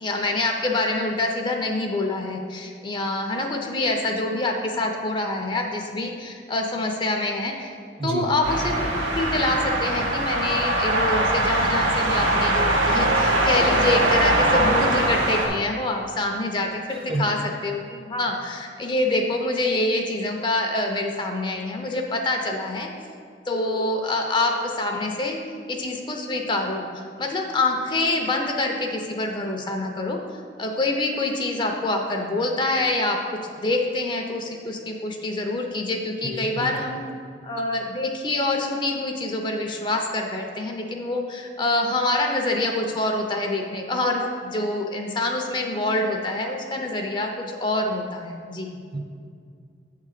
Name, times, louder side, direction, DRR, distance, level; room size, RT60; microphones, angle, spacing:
voice 1, 0.0-7.8 8.0-22.9 23.5-25.4 25.7-30.2 30.6-37.0 37.4-47.3 47.6-48.8, left 2 dB, 25° left, 2 dB, 0.5 m, -26 dB
sound 1, 8.4-15.5, right 1 dB, 90° right, 1.9 m, -22 dB
voice 2, 16.9-17.2 36.2-36.7 48.9-49.0, right 2 dB, 30° right, 2 dB, 0.7 m, -29 dB
8.1 x 3.7 x 6.5 m, 2.2 s
head